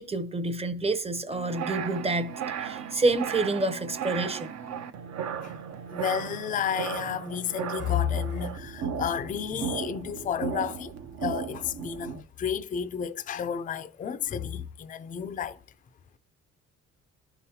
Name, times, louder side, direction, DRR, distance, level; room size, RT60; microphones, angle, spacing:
voice 1, 0.0-2.3 2.6-4.5, right 2 dB, 20° right, 0.7 m, -28 dB
sound 1, 1.3-12.2, right 7 dB, 60° right, 0.7 m, -36 dB
voice 2, 5.9-10.9 11.2-15.6, left 8 dB, 30° left, 0.4 m, -31 dB
11.5 x 3.9 x 2.8 m
cardioid pair, 90°, 30 cm